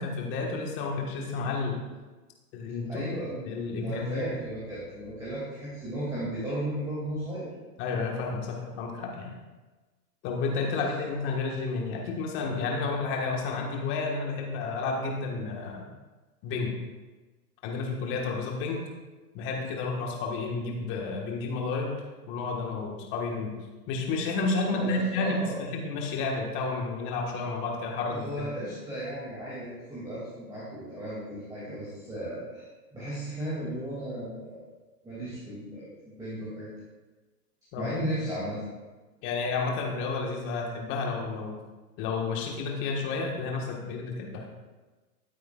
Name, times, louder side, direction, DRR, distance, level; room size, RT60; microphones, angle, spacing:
voice 1, 0.0-1.8 2.5-3.1 3.4-4.3 7.8-9.3 10.2-15.9 16.4-16.7 17.6-18.8 19.3-21.9 22.3-23.5 23.9-28.5 37.7-37.9 39.2-41.5 42.0-44.4, left 3 dB, 25° left, 0 dB, 1.5 m, -31 dB
voice 2, 2.9-3.3 3.7-7.5 10.7-10.8 24.7-25.6 28.1-34.6 35.0-35.9 36.2-36.7 37.7-38.6, right 1 dB, 10° right, -9 dB, 2.5 m, -35 dB
13.0 x 8.3 x 2.4 m, 1.2 s
hypercardioid pair, 140°, 48 cm